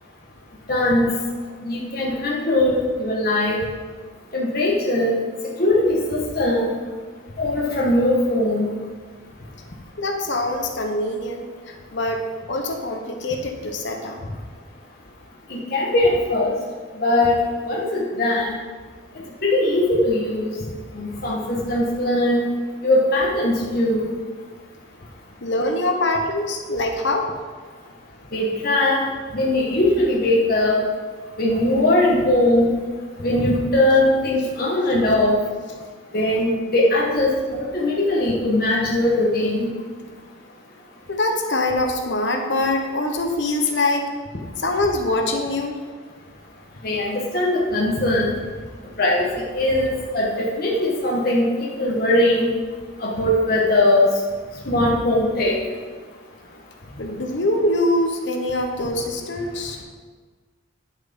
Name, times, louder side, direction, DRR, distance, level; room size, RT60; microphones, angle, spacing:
voice 1, 0.7-1.1 1.6-3.6 4.3-5.1 5.6-6.7 7.4-8.7 15.5-16.5 17.0-17.3 17.6-18.6 19.4-20.5 20.9-22.4 22.8-24.1 28.3-29.0 29.3-30.8 31.4-32.7 33.2-35.4 36.1-39.7 46.8-48.3 49.0-52.5 53.0-54.1 54.7-55.6, left 1 dB, 50° left, -4 dB, 1.6 m, -20 dB
voice 2, 10.0-14.2 25.4-27.3 41.1-44.1 44.6-45.7 57.0-59.8, left 2 dB, 65° left, 4 dB, 1.1 m, -24 dB
10.5 x 7.9 x 5.5 m, 1.5 s
head